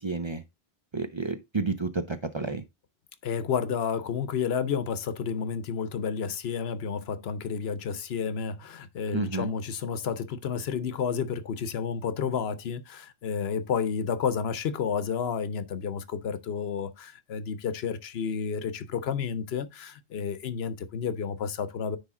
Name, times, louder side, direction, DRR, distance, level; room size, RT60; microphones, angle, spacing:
voice 1, 0.0-0.4 0.9-2.6 9.1-9.5, right 3 dB, 35° right, 0.5 m, -30 dB
voice 2, 3.2-22.0, left 7 dB, 80° left, 1.0 m, -31 dB
9.8 x 3.5 x 3.6 m
omnidirectional pair, 1.0 m